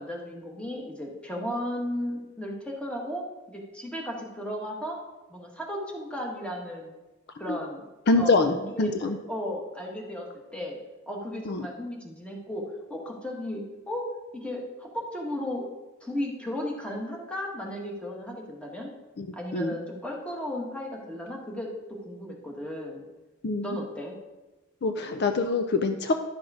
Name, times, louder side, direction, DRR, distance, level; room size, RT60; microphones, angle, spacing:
voice 1, 0.0-5.0 5.3-6.9 7.4-7.8 8.2-10.3 10.5-10.8 11.1-14.1 14.3-15.6 16.0-18.9 19.3-23.0 23.6-24.1, left 1 dB, 5° left, -1 dB, 1.5 m, -35 dB
voice 2, 8.1-9.2 11.5-11.7 19.2-19.3 19.5-19.7 23.4-23.8 24.8-26.1, left 3 dB, 55° left, 7 dB, 0.5 m, -25 dB
11.0 x 6.0 x 4.9 m, 1.1 s
head